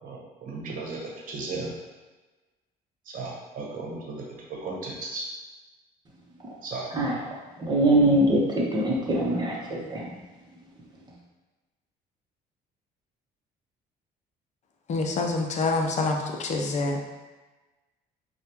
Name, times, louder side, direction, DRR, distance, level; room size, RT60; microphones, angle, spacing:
voice 1, 0.0-1.7 3.0-4.2 4.5-5.3 6.6-6.9, right 3 dB, 55° right, -2 dB, 1.0 m, -35 dB
voice 2, 7.6-10.0, right 1 dB, 25° right, -3 dB, 0.9 m, -23 dB
voice 3, 14.9-17.1, left 3 dB, 45° left, 3 dB, 0.6 m, -26 dB
4.8 x 2.3 x 2.9 m, 1.2 s
cardioid pair, 110°, 17 cm